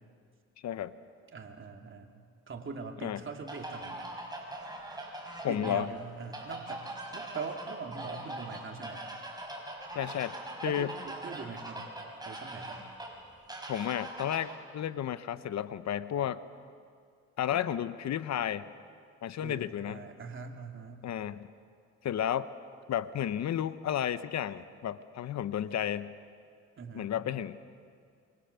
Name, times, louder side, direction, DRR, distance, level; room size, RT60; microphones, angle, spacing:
voice 1, 1.3-2.1 2.5-4.0 5.5-9.0 10.6-11.9 12.3-12.9 19.4-21.1 26.8-27.1, right 5 dB, 40° right, 3 dB, 2.9 m, -42 dB
sound 1, 3.5-14.6, right 1 dB, 15° right, 5.2 m, -42 dB
voice 2, 5.4-5.9 9.9-10.4 10.6-10.9 13.7-16.4 17.4-18.7 19.2-20.0 21.0-21.5 22.0-22.5 22.9-26.1 26.9-27.7, left 10 dB, 60° left, 14 dB, 0.9 m, -32 dB
27.0 x 24.5 x 7.0 m, 2.2 s
cardioid pair, 90°, 30 cm